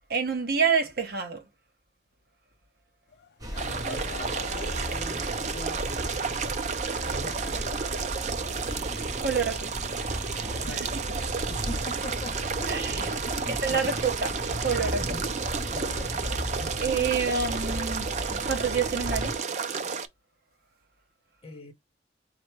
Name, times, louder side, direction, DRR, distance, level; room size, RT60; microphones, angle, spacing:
voice 1, 0.1-1.5 9.2-9.8 10.7-10.9 12.7-13.1 13.5-14.3 14.6-15.2 16.8-18.1 18.4-19.4, right 5 dB, 60° right, 1.0 m, -28 dB
Laughter / Crowd, 3.1-7.8, left 4 dB, 65° left, 0.5 m, -44 dB
sound 1, 3.4-19.4, equal, 20° right, 0.9 m, -35 dB
voice 2, 3.5-6.7 6.9-7.6 10.6-11.0 11.5-14.6 14.9-15.3 15.7-16.8 21.4-21.7, left 1 dB, 35° left, 0.9 m, -43 dB
sound 2, 3.6-20.1, right 5 dB, 40° right, 0.4 m, -32 dB
4.4 x 2.2 x 4.5 m
head